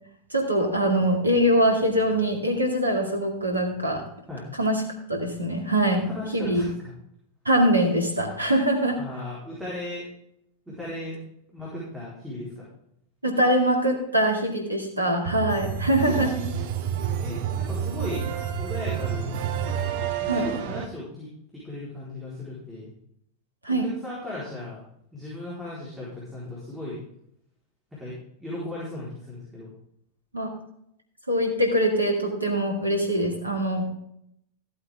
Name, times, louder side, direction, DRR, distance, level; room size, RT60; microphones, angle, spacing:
voice 1, 0.3-4.1 4.6-4.8 5.1-6.6 7.4-9.0 13.2-16.3 20.3-20.5 23.6-23.9 30.3-30.5 31.3-33.8, right 1 dB, 85° right, 2 dB, 2.4 m, -23 dB
voice 2, 6.0-6.9 9.0-10.0 10.8-11.2 11.5-12.6 16.0-16.8 17.2-18.3 18.6-19.4 20.2-21.3 21.6-22.9 23.7-24.8 25.1-27.0 28.0-28.1 28.4-29.7, left 1 dB, 5° right, -7 dB, 4.4 m, -36 dB
sound 1, 15.2-20.9, right 8 dB, 50° right, 1.0 m, -29 dB
14.5 x 8.3 x 3.7 m, 0.73 s
figure-of-eight pair, 90°, 0 cm